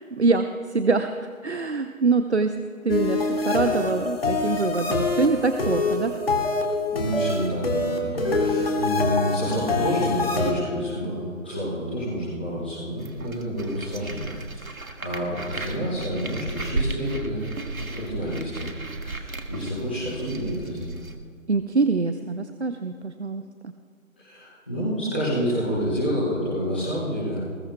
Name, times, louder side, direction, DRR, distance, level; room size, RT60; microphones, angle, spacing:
voice 1, 0.1-1.1 1.4-2.6 2.8-6.2 21.5-23.7, right 4 dB, 50° right, 9 dB, 0.7 m, -24 dB
sound 1, 2.9-10.5, left 3 dB, 45° left, 2.0 m, -25 dB
voice 2, 6.9-17.4 17.7-18.7 19.0-21.0 24.2-27.4, equal, 5° left, -13 dB, 1.1 m, -29 dB
sound 2, 13.0-21.2, right 2 dB, 75° right, 1.7 m, -34 dB
21.0 x 20.0 x 2.2 m, 2.2 s
figure-of-eight pair, 165°, 42 cm